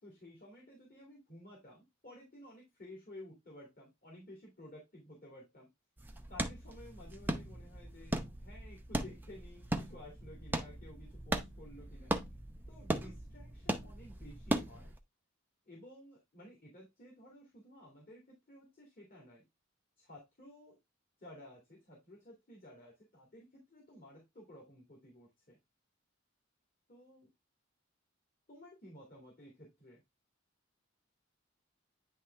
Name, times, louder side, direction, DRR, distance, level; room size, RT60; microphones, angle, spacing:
voice 1, 0.0-5.7 6.3-12.1 12.7-14.9 15.7-19.4 20.0-20.8 21.2-25.6 26.9-27.3 28.5-30.0, left 1 dB, 45° left, 2.5 m, -54 dB
sound 1, 6.0-15.0, right 1 dB, 10° right, 0.6 m, -38 dB
9.7 x 3.4 x 3.3 m
head